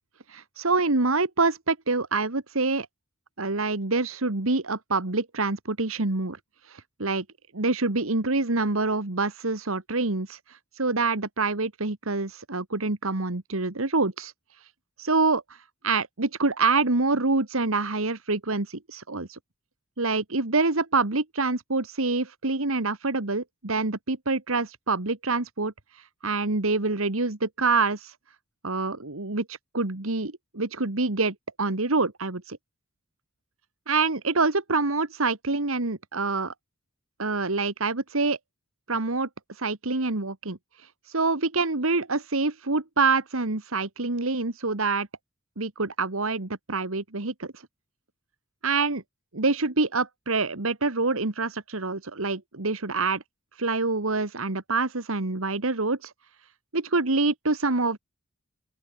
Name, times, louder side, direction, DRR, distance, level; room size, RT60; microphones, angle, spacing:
voice 1, 0.3-2.9 3.4-6.4 6.7-7.2 7.5-14.3 15.0-15.4 15.8-19.4 20.0-25.7 26.2-28.1 28.6-32.6 33.9-36.5 37.2-38.4 38.9-39.3 39.6-40.6 41.1-45.1 45.6-47.5 48.6-49.0 49.3-53.2 53.6-56.1 56.7-58.0, right 3 dB, 70° right, 1.9 m, -26 dB
open air
head